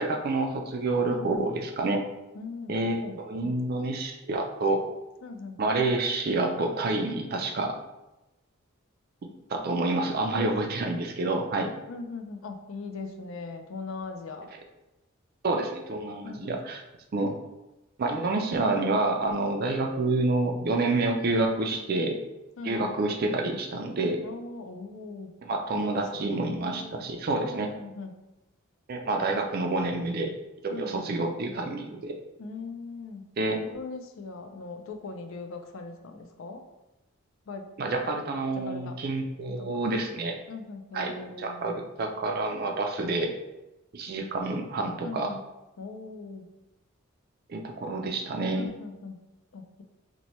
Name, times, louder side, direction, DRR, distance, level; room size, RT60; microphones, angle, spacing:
voice 1, 0.0-2.0 2.7-4.9 5.6-7.8 9.5-11.7 15.4-16.8 17.1-17.4 18.0-22.2 22.6-24.2 25.4-27.7 28.9-30.3 30.6-32.2 33.4-33.7 37.8-40.4 40.9-41.1 41.4-43.3 43.9-45.3 47.5-48.7, right 2 dB, 45° right, 3 dB, 0.4 m, -28 dB
voice 2, 1.1-1.5 2.3-3.6 5.2-5.6 10.2-10.5 11.9-14.5 16.2-16.6 22.6-22.9 24.2-25.4 25.7-27.1 27.5-28.2 30.7-31.1 32.4-33.3 33.7-36.6 37.5-38.2 38.5-39.0 39.6-39.7 40.5-41.9 45.0-45.4 45.8-46.5 48.5-49.2 49.5-49.8, left 3 dB, 70° left, 5 dB, 0.4 m, -40 dB
3.0 x 2.2 x 4.1 m, 0.98 s
head